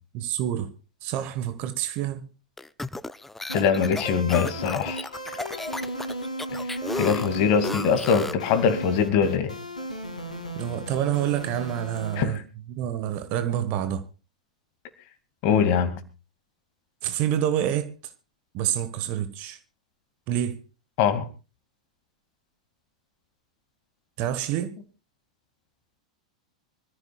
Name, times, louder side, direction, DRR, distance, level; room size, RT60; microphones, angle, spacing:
voice 1, 0.1-0.7 1.0-2.3 10.5-12.4 12.7-14.0 17.0-17.9 18.5-19.6 20.3-20.6 24.2-24.8, right 11 dB, 40° right, 1.4 m, -27 dB
sound 1, 2.6-8.5, left 2 dB, 5° left, 0.7 m, -34 dB
sound 2, 3.5-12.2, right 1 dB, 80° left, 2.8 m, -35 dB
voice 2, 3.5-5.1 6.6-6.7 7.0-9.6 12.1-12.4 15.4-16.1 21.0-21.3, left 7 dB, 40° left, 2.3 m, -23 dB
25.5 x 14.5 x 2.4 m
figure-of-eight pair, 95°, 4 cm